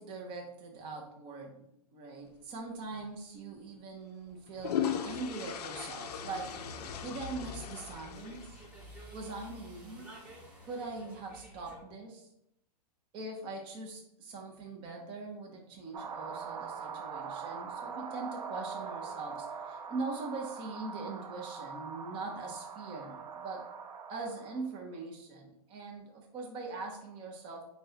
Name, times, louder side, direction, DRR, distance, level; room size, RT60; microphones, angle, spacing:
voice 1, 0.0-1.6 1.9-6.6 7.0-8.6 9.1-10.1 10.6-12.3 13.1-23.7 24.1-27.6, right 3 dB, 25° right, 0 dB, 0.6 m, -42 dB
sound 1, 2.9-3.1 4.3-8.9, left 9 dB, 70° left, 0.5 m, -38 dB
sound 2, 6.1-11.8, right 2 dB, 5° right, 1.1 m, -50 dB
sound 3, 15.9-24.6, right 6 dB, 75° right, 0.6 m, -42 dB
5.9 x 2.2 x 2.8 m, 0.79 s
hypercardioid pair, 135°, 21 cm